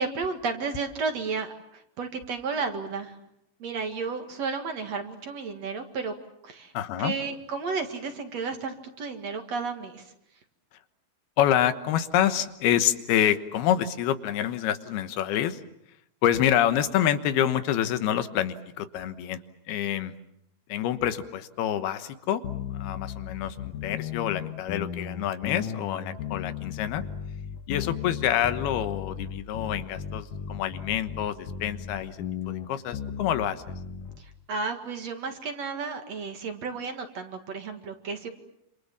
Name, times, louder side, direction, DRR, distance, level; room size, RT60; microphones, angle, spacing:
voice 1, 0.0-3.2 3.6-6.1 6.4-6.7 7.0-10.1 34.2-38.3, right 4 dB, 50° right, 6 dB, 2.7 m, -32 dB
voice 2, 6.7-7.1 11.4-15.6 16.2-20.1 20.7-22.4 22.7-27.0 27.7-33.6, left 11 dB, 85° left, 11 dB, 3.2 m, -27 dB
sound 1, 22.4-34.2, left 8 dB, 65° left, 2.6 m, -36 dB
28.0 x 27.0 x 7.3 m, 0.77 s
omnidirectional pair, 4.3 m